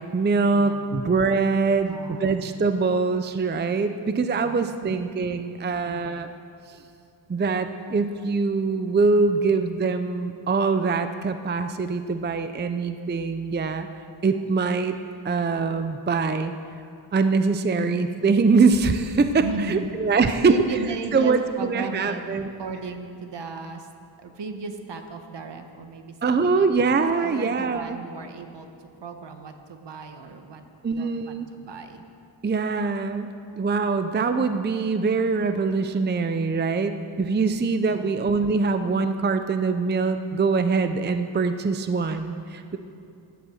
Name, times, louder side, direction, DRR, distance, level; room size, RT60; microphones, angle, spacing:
voice 1, 0.0-6.3 6.7-6.8 7.3-13.9 14.2-15.0 15.2-16.5 17.1-20.5 21.1-22.5 26.2-28.0 30.8-31.5 32.4-42.8, right 4 dB, 25° right, 9 dB, 0.5 m, -23 dB
voice 2, 0.5-1.0 1.8-2.4 3.9-4.0 4.4-5.0 5.7-6.1 19.4-19.9 20.2-22.2 22.6-23.9 24.2-28.7 29.0-30.6 30.9-32.0 37.9-38.2, right 3 dB, 65° right, 6 dB, 1.3 m, -36 dB
16.0 x 11.0 x 6.4 m, 2.5 s
wide cardioid pair, 130°, 46 cm